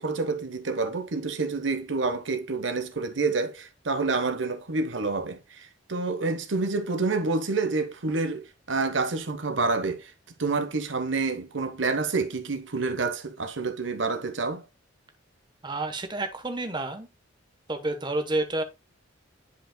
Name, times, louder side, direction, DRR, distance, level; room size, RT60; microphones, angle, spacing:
voice 1, 0.0-10.1 10.4-14.6, right 3 dB, 65° right, 1.0 m, -28 dB
voice 2, 15.6-17.1 17.7-18.6, right 2 dB, 25° right, 1.0 m, -29 dB
10.5 x 5.0 x 2.2 m
head